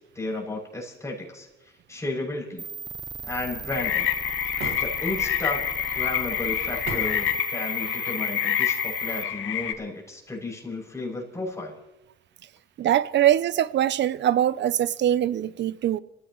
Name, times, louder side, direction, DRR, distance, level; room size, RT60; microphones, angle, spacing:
voice 1, 0.2-1.5 1.9-2.7 3.2-4.1 4.8-5.6 5.9-11.7, left 2 dB, 15° left, 7.0 m, -33 dB
sound 1, 2.6-9.2, right 5 dB, 20° right, 0.7 m, -37 dB
sound 2, 3.7-9.7, left 10 dB, 75° left, 1.4 m, -27 dB
sound 3, 4.6-5.3 6.8-7.3, right 5 dB, 85° right, 1.9 m, -36 dB
voice 2, 12.8-16.0, right 11 dB, 65° right, 0.6 m, -22 dB
28.0 x 15.5 x 3.1 m
cardioid pair, 90°, 20 cm